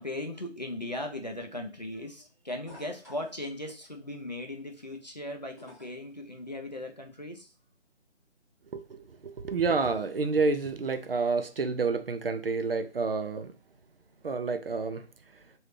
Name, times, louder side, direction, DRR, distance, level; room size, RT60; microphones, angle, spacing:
voice 1, 0.0-7.5, left 1 dB, 40° left, 3 dB, 0.4 m, -38 dB
sound 1, 2.7-3.4 5.6-6.1 7.7-7.8, left 1 dB, 15° right, 0.7 m, -50 dB
voice 2, 8.7-13.5 14.2-15.0, right 4 dB, 55° right, 9 dB, 0.4 m, -29 dB
3.2 x 2.7 x 3.1 m, 0.34 s
figure-of-eight pair, 170°, 35 cm